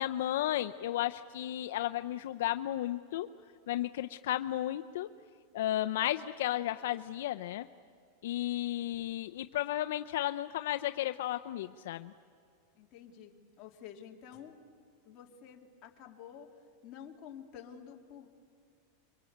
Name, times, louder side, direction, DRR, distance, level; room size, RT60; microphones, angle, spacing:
voice 1, 0.0-3.3 3.7-5.1 5.5-7.7 8.2-12.1, left 13 dB, 70° left, 8 dB, 0.6 m, -33 dB
voice 2, 12.8-13.3 13.6-14.6 15.0-16.5 16.8-18.3, left 8 dB, 30° left, 0 dB, 2.6 m, -50 dB
27.0 x 23.5 x 8.7 m, 2.3 s
supercardioid pair, 165°, 0 cm